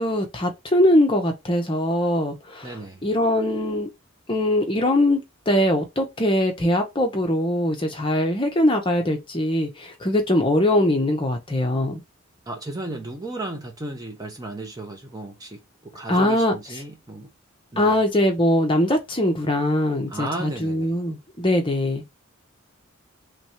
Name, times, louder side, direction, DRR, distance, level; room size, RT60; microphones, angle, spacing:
voice 1, 0.0-2.7 3.0-3.9 4.3-12.0 16.1-16.5 17.8-22.0, left 1 dB, 25° left, 0.8 m, -22 dB
voice 2, 2.6-3.0 12.5-17.3 17.7-17.9 20.1-20.9, right 2 dB, 15° right, 0.6 m, -34 dB
3.2 x 2.5 x 4.4 m
head